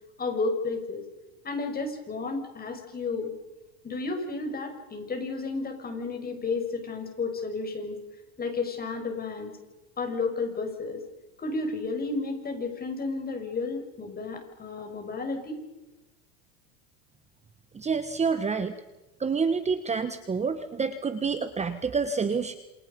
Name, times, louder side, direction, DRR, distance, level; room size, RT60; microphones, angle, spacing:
voice 1, 0.2-1.0 1.4-3.3 3.8-8.0 8.4-9.6 10.0-11.0 11.4-15.6, left 3 dB, 25° left, 5 dB, 6.0 m, -32 dB
voice 2, 17.7-18.7 19.2-22.6, right 5 dB, 15° right, 10 dB, 1.3 m, -28 dB
28.0 x 27.0 x 5.4 m, 1.0 s
supercardioid pair, 115°, 40 cm